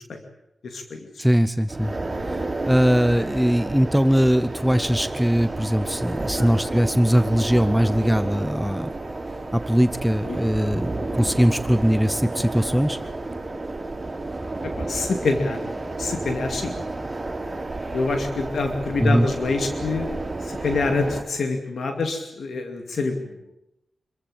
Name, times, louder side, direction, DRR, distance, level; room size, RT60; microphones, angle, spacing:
voice 1, 0.6-1.1 6.3-6.5 10.2-10.4 14.6-15.7 16.0-16.7 17.9-20.1 20.4-23.3, left 3 dB, 75° left, 5 dB, 2.5 m, -26 dB
voice 2, 1.2-1.9 2.2-8.9 9.5-13.0 19.0-19.3, equal, 5° right, 12 dB, 0.8 m, -21 dB
sound 1, 1.7-21.2, right 2 dB, 30° right, 5.2 m, -31 dB
26.0 x 15.5 x 8.9 m, 0.87 s
wide cardioid pair, 80°, 0 cm